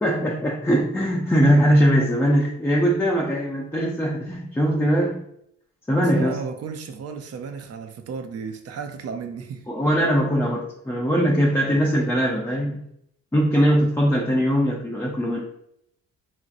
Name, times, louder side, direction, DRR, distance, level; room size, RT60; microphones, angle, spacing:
voice 1, 0.0-5.2 5.9-6.4 9.7-12.8 13.3-15.5, equal, 10° left, -2 dB, 0.5 m, -21 dB
voice 2, 6.1-9.7, right 5 dB, 55° right, 7 dB, 0.5 m, -34 dB
3.0 x 2.6 x 2.5 m, 0.72 s
cardioid pair, 90°, 30 cm